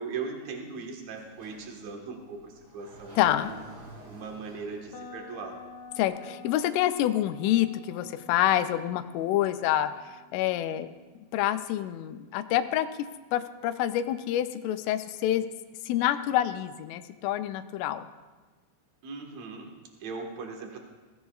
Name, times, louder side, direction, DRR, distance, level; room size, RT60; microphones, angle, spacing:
voice 1, 0.0-3.6 4.1-5.6 19.0-19.7 20.0-20.8, right 4 dB, 65° right, 1 dB, 1.7 m, -39 dB
Sliding door, 1.1-6.1, right 1 dB, 40° right, 4.5 m, -51 dB
voice 2, 3.2-3.5 6.0-9.9 10.3-10.9 11.3-12.9 13.3-15.5 15.9-18.1, left 12 dB, 90° left, 10 dB, 3.2 m, -27 dB
sound 1, 4.9-12.8, left 3 dB, 75° left, 2.6 m, -50 dB
21.0 x 16.0 x 2.4 m, 1.3 s
omnidirectional pair, 5.5 m